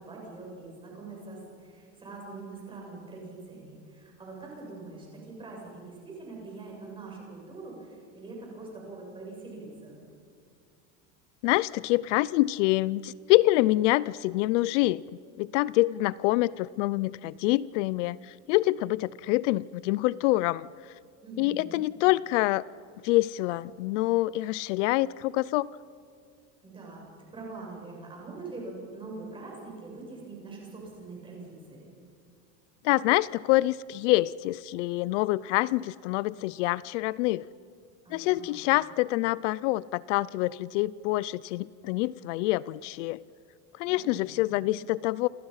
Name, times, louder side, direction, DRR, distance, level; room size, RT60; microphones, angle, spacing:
voice 1, 0.0-10.0 21.2-21.8 26.6-27.0 27.3-31.9 38.0-38.6 43.9-44.7, right 3 dB, 15° right, -2 dB, 7.7 m, -43 dB
voice 2, 11.4-15.0 15.4-20.9 21.4-22.7 23.0-25.7 32.8-37.5 38.1-43.2 43.8-45.3, left 18 dB, 70° left, 20 dB, 0.6 m, -26 dB
28.5 x 28.0 x 5.7 m, 2.3 s
cardioid pair, 175°, 38 cm